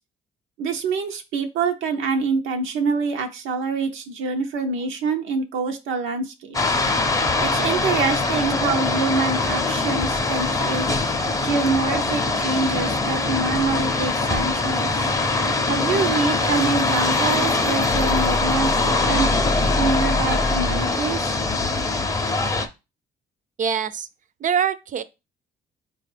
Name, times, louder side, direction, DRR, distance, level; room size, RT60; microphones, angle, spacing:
voice 1, 0.6-6.7 7.4-10.9 11.4-15.1 15.7-19.3 19.7-21.4, right 4 dB, 90° right, 0.6 m, -25 dB
sound 1, 6.5-22.7, left 3 dB, 15° left, 0.5 m, -22 dB
voice 2, 23.6-24.1 24.4-25.0, right 8 dB, 40° right, 0.4 m, -23 dB
4.2 x 2.3 x 3.3 m
cardioid pair, 90°, 20 cm